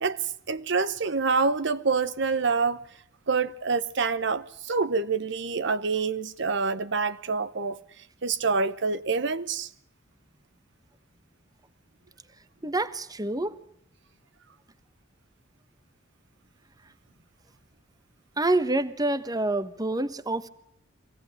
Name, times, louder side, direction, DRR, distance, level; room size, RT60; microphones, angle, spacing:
voice 1, 0.0-2.9 3.3-9.7, right 4 dB, 65° right, 0.9 m, -27 dB
voice 2, 12.6-13.6 18.4-20.5, right 2 dB, 20° right, 1.2 m, -27 dB
24.0 x 17.0 x 9.9 m
head